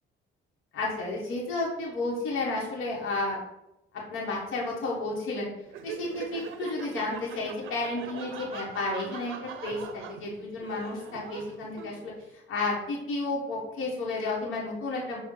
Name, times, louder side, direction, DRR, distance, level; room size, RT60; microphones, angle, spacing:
voice 1, 0.7-3.4 3.9-5.5 5.8-12.1 12.5-15.2, left 2 dB, 85° left, -3 dB, 1.0 m, -32 dB
Laughter, 5.7-12.2, right 7 dB, 90° right, 0.5 m, -42 dB
5.3 x 2.3 x 3.7 m, 0.87 s
cardioid pair, 90°, 20 cm